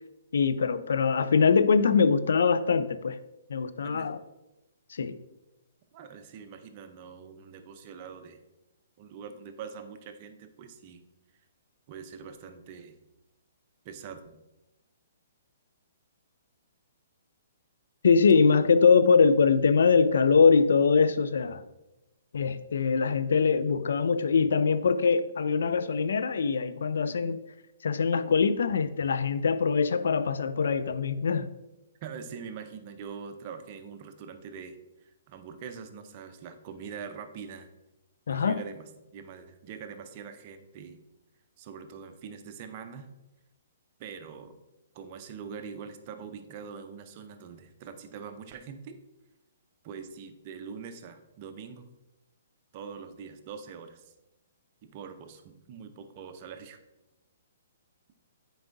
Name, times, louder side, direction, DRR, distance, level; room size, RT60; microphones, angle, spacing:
voice 1, 0.3-3.2 3.5-4.2 4.9-5.2 18.0-21.6 22.3-27.4 27.8-31.5 38.3-38.6, left 5 dB, 75° left, 0.4 m, -23 dB
voice 2, 5.9-8.4 9.0-11.0 11.9-13.0 13.8-14.4 32.0-37.7 38.3-41.0 41.6-43.1 44.0-44.6 44.9-49.0 49.8-51.9 52.7-54.1 54.8-56.8, right 6 dB, 40° right, 0.6 m, -43 dB
7.8 x 4.7 x 2.6 m
hypercardioid pair, 135°, 0 cm